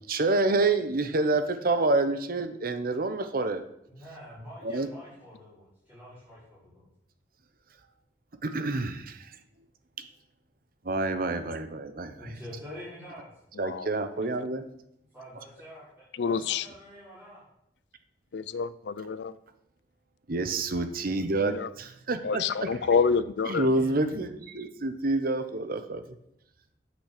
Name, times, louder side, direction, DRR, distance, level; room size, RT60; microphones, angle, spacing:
voice 1, 0.1-3.6 4.6-4.9 8.4-9.2 10.8-12.3 13.6-14.7 20.3-22.8 23.4-26.0, right 2 dB, 55° right, 9 dB, 0.8 m, -28 dB
voice 2, 3.9-6.9 12.2-13.3 15.1-17.4 23.5-24.1, left 1 dB, 10° right, -12 dB, 3.9 m, -46 dB
voice 3, 16.2-16.6 18.3-19.3 21.4-21.7 22.2-23.7, left 5 dB, 75° left, 16 dB, 0.5 m, -27 dB
8.7 x 6.1 x 6.6 m, 0.78 s
head